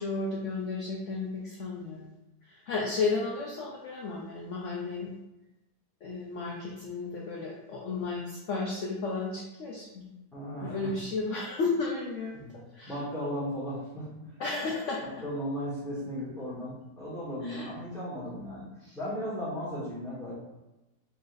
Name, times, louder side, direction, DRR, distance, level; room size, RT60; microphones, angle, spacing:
voice 1, 0.0-2.1 2.4-5.1 6.0-10.1 10.6-12.9 14.4-15.0 17.4-17.7 18.8-18.9, left 3 dB, 65° left, -3 dB, 0.8 m, -33 dB
voice 2, 10.3-10.9 12.3-12.5 12.9-14.4 15.0-20.3, equal, ahead, -8 dB, 1.2 m, -36 dB
4.0 x 3.9 x 2.5 m, 0.99 s
omnidirectional pair, 1.7 m